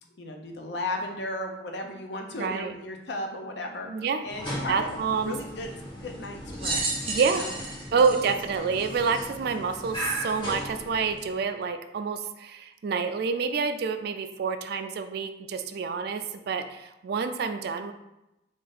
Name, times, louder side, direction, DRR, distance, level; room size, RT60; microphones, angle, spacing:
voice 1, 0.2-3.9 4.2-6.9 7.2-7.6 7.9-8.0, left 1 dB, 65° left, 3 dB, 0.6 m, -35 dB
voice 2, 2.3-2.7 3.9-4.2 4.7-5.3 7.1-7.4 7.9-17.9, right 5 dB, 55° right, 8 dB, 0.3 m, -28 dB
sound 1, 4.2-11.4, equal, 25° left, 1.1 m, -37 dB
sound 2, 6.6-9.3 10.0-10.1 11.2-11.3, right 3 dB, 30° right, 0.8 m, -32 dB
3.7 x 2.5 x 4.0 m, 0.91 s
head